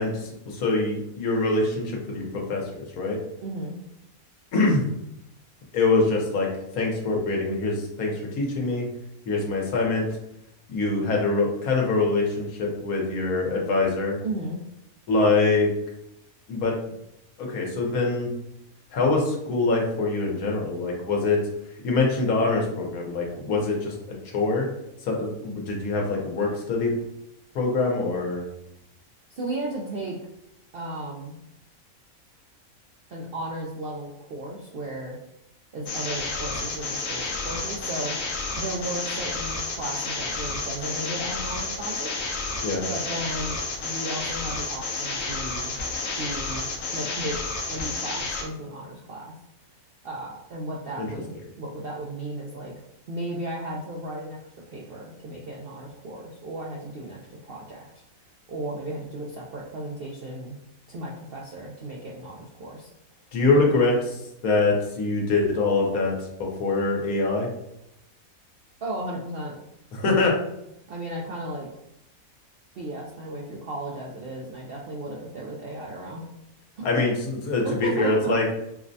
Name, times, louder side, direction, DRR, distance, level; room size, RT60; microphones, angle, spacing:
voice 1, 0.0-2.6 3.0-3.2 4.5-4.8 5.7-6.5 6.7-8.9 9.3-10.1 10.7-14.1 15.1-15.7 16.5-16.8 17.4-18.3 18.9-21.4 21.8-23.9 24.3-24.7 25.0-26.9 27.5-28.4 42.6-42.8 51.0-51.1 63.3-67.5 69.9-70.3 76.8-78.4, left 3 dB, 75° left, -1 dB, 1.3 m, -24 dB
voice 2, 3.4-3.8 14.2-14.6 29.3-30.2 30.7-31.4 33.1-35.2 35.7-38.2 38.6-42.1 42.9-45.7 46.2-46.7 46.9-47.4 47.7-49.4 50.0-52.7 53.1-54.4 54.7-57.8 58.5-60.6 60.9-62.9 68.8-69.5 70.9-71.7 72.8-76.3 76.8-76.9 77.6-78.4, right 1 dB, 65° right, -3 dB, 0.5 m, -34 dB
sound 1, 35.9-48.4, left 3 dB, 60° left, 0.8 m, -31 dB
4.7 x 2.1 x 2.6 m, 0.82 s
omnidirectional pair, 1.5 m